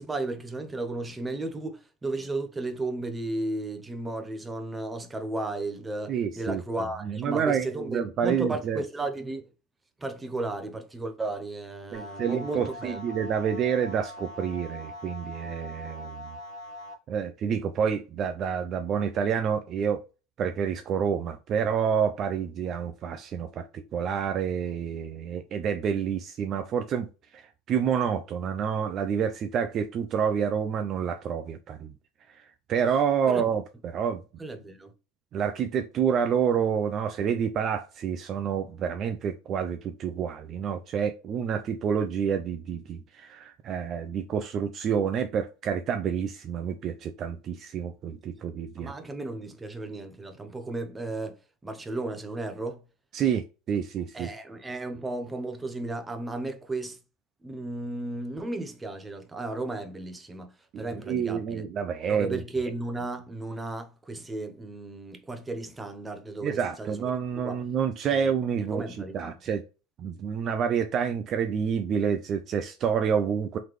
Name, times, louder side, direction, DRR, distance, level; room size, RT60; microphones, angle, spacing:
voice 1, 0.0-9.5 10.0-13.0 33.3-33.4 34.4-34.9 48.8-52.8 54.1-57.0 57.4-61.6 62.1-67.1 67.4-67.6 68.1-68.3 68.6-69.6, right 2 dB, 10° right, 0.7 m, -34 dB
voice 2, 6.1-6.6 7.0-8.8 11.9-16.4 17.1-20.0 20.4-27.1 27.3-31.9 32.3-34.2 35.3-48.9 53.1-54.3 60.7-62.4 66.4-69.6 70.0-73.6, right 7 dB, 40° right, 0.4 m, -28 dB
sound 1, 11.9-16.9, left 1 dB, 60° left, 1.1 m, -42 dB
3.9 x 3.2 x 3.1 m
supercardioid pair, 130°, 0 cm